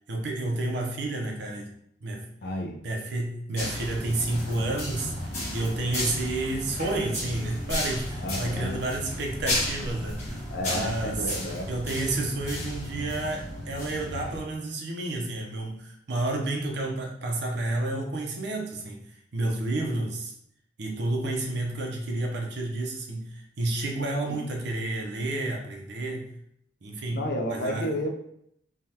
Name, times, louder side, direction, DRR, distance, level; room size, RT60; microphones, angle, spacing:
voice 1, 0.1-1.7 2.0-2.2 2.8-5.1 5.5-10.2 10.6-11.3 11.7-19.1 19.3-20.3 20.8-26.3 26.8-27.2 27.5-27.9, right 2 dB, 65° right, 1 dB, 0.6 m, -30 dB
voice 2, 2.4-2.8 8.2-8.8 10.5-11.7 27.1-28.1, left 1 dB, 60° left, 3 dB, 0.5 m, -31 dB
sound 1, 3.5-14.4, left 1 dB, 40° left, 1.1 m, -33 dB
3.3 x 2.3 x 2.8 m, 0.72 s
head